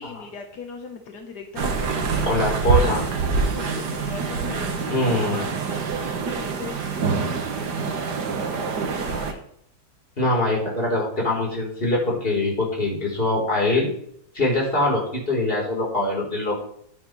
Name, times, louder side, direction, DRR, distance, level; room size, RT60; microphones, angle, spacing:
voice 1, 0.0-2.3 2.7-5.5 5.8-8.0 8.7-9.4, left 5 dB, 80° left, 3 dB, 1.8 m, -39 dB
sound 1, 1.6-9.3, right 5 dB, 85° right, 2.0 m, -25 dB
voice 2, 2.3-3.0 4.9-5.4 10.2-13.9 14.3-16.6, left 2 dB, 35° left, -3 dB, 4.1 m, -23 dB
14.5 x 9.6 x 3.2 m, 0.69 s
omnidirectional pair, 1.7 m